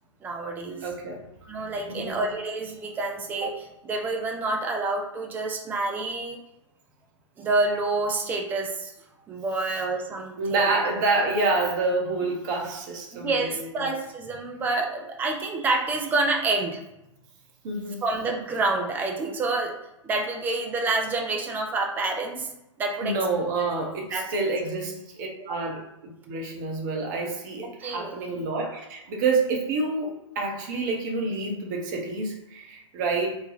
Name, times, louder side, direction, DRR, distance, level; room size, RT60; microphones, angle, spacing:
voice 1, 0.2-0.8 1.5-6.4 7.4-8.9 9.3-10.8 13.1-16.8 18.0-19.7 20.0-22.5 22.8-23.2 24.1-24.3 25.5-25.6 27.8-28.2, right 3 dB, 10° right, 2 dB, 0.4 m, -28 dB
voice 2, 0.8-1.2 1.9-2.2 10.4-13.6 13.8-13.9 17.6-18.0 23.0-25.8 26.3-33.4, right 3 dB, 35° right, 1 dB, 0.7 m, -28 dB
3.2 x 2.2 x 4.0 m, 0.88 s
figure-of-eight pair, 110°, 16 cm